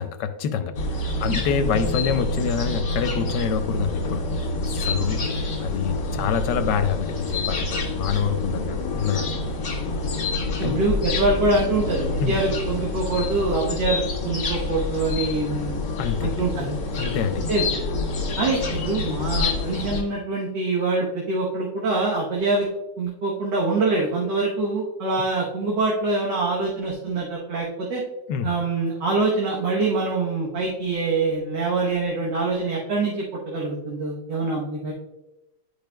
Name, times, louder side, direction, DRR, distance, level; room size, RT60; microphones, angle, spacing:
voice 1, 0.0-4.2 4.8-9.3 10.6-10.8 12.2-12.3 16.0-16.4 16.9-17.4 28.3-28.5, left 7 dB, 90° left, 9 dB, 1.2 m, -26 dB
sound 1, 0.7-20.0, left 3 dB, 60° left, 1.8 m, -27 dB
voice 2, 10.6-15.8 16.2-16.8 17.5-17.8 18.4-22.7 23.0-28.0 28.4-34.9, right 3 dB, 85° right, -3 dB, 1.8 m, -25 dB
10.5 x 5.0 x 2.2 m, 1.0 s
omnidirectional pair, 1.8 m